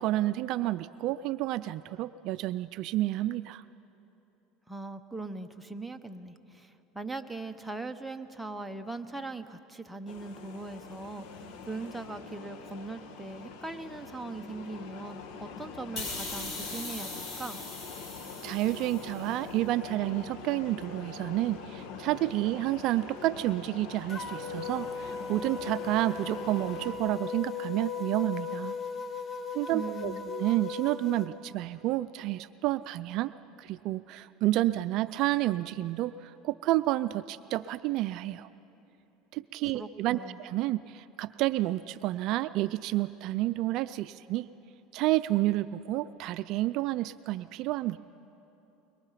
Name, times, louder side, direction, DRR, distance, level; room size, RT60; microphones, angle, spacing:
voice 1, 0.0-3.6 18.4-28.7 29.5-33.3 33.6-38.5 39.3-44.5 44.9-48.0, right 16 dB, 60° right, 14 dB, 0.4 m, -30 dB
voice 2, 4.7-17.6 29.7-30.4 39.7-40.4, right 3 dB, 5° right, 5 dB, 1.0 m, -40 dB
sound 1, 10.1-27.0, left 5 dB, 70° left, 2.0 m, -44 dB
sound 2, 16.0-19.3, left 3 dB, 45° left, 6.6 m, -40 dB
sound 3, 24.1-31.3, left 5 dB, 30° left, 1.2 m, -37 dB
23.0 x 22.5 x 5.8 m, 2.9 s
supercardioid pair, 110°, 0 cm